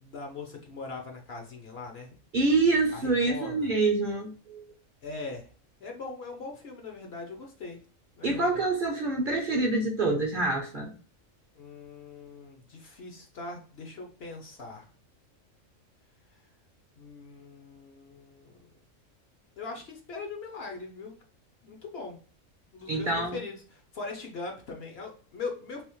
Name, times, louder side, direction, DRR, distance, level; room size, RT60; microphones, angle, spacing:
voice 1, 0.0-2.2 2.9-3.7 5.0-5.5 5.8-7.8 8.2-8.7 11.6-14.9 17.0-18.8 19.6-21.1 21.6-22.2 22.7-25.8, left 3 dB, 55° left, 2 dB, 0.9 m, -41 dB
voice 2, 2.3-4.6 8.2-10.9 22.9-23.4, right 3 dB, 50° right, 1 dB, 0.7 m, -26 dB
3.4 x 2.9 x 3.0 m, 0.41 s
omnidirectional pair, 1.4 m